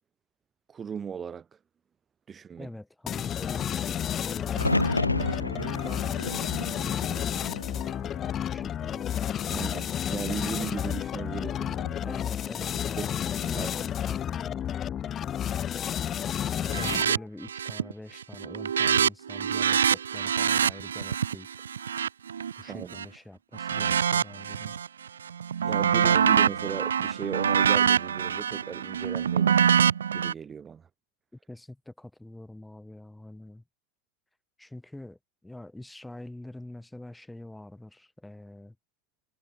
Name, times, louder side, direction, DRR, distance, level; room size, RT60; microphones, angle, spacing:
voice 1, 0.7-1.5 2.3-2.7 9.5-12.1 12.6-13.1 13.4-13.7 22.7-23.0 25.6-29.6 30.1-30.9, right 7 dB, 20° right, 2.2 m, -37 dB
voice 2, 2.6-9.1 12.0-14.7 16.6-21.5 22.6-24.8 31.5-33.6 34.6-38.8, left 1 dB, 5° left, 7.0 m, -45 dB
sound 1, 3.1-17.3, left 10 dB, 25° left, 1.1 m, -31 dB
sound 2, 4.5-8.6 9.0-9.7 11.6-12.1, left 2 dB, 85° left, 0.3 m, -31 dB
sound 3, 16.7-17.2 17.5-17.9 18.2-23.1 23.6-24.9 25.3-30.3, right 8 dB, 65° right, 0.3 m, -25 dB
figure-of-eight pair, 90°, 0 cm